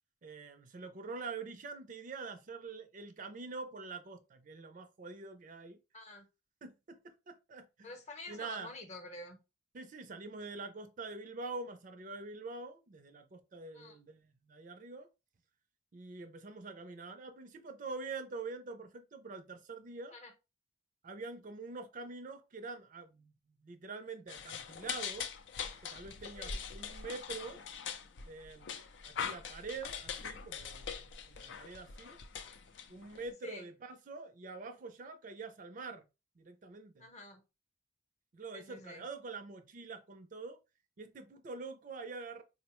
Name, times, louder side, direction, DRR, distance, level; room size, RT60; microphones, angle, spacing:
voice 1, 0.2-5.8 6.6-7.9 8.3-8.7 9.7-15.1 15.9-20.1 21.0-23.3 23.6-25.3 25.8-27.6 28.3-28.7 29.0-32.2 32.9-36.0 36.4-37.1 38.3-40.6 41.0-42.4, right 3 dB, 45° right, 0.4 m, -45 dB
voice 2, 5.9-6.3 7.8-9.4 13.7-14.0 20.1-20.3 26.4-26.7 33.4-33.7 37.0-37.4 38.5-39.0, left 2 dB, 40° left, 0.8 m, -48 dB
sound 1, 24.3-33.3, left 6 dB, 70° left, 0.4 m, -42 dB
4.0 x 2.1 x 2.9 m
head